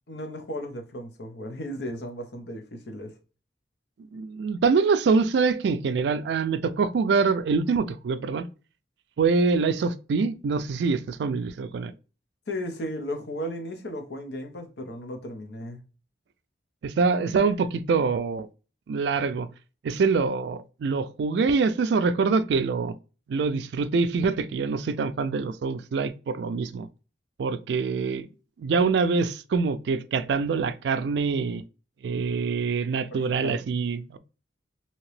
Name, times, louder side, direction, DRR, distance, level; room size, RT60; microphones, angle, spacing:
voice 1, 0.1-3.1 12.5-15.8 33.1-33.6, equal, 70° left, 0.7 m, -35 dB
voice 2, 4.1-8.5 9.2-11.9 16.8-18.5 18.9-19.5 19.8-22.9 23.3-26.9 27.4-28.3 28.6-31.6 32.0-34.2, right 4 dB, 70° right, 0.3 m, -25 dB
2.8 x 2.8 x 3.1 m
head